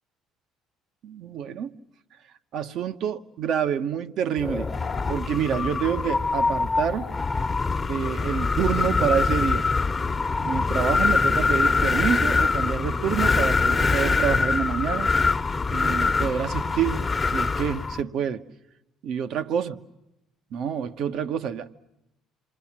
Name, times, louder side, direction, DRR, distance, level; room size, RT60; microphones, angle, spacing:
voice 1, 1.0-1.7 2.5-4.7 5.1-7.1 7.9-9.7 10.4-15.1 15.7-17.0 17.3-18.4 19.0-19.8 20.5-21.7, right 8 dB, 65° right, 1.1 m, -27 dB
Wind, 4.4-18.0, left 4 dB, 30° left, 1.2 m, -24 dB
27.5 x 24.0 x 7.4 m
hypercardioid pair, 65°, 0 cm